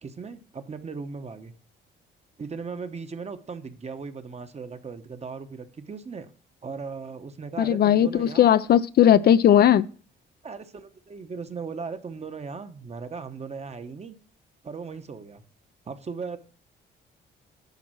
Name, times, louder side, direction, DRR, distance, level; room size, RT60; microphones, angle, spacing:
voice 1, 0.0-1.5 2.4-6.3 6.6-8.5 10.4-14.2 14.6-15.4 15.9-16.4, right 5 dB, 35° right, 0.9 m, -37 dB
voice 2, 7.6-9.9, left 10 dB, 50° left, 0.4 m, -18 dB
10.5 x 4.2 x 6.1 m
cardioid pair, 90°, 20 cm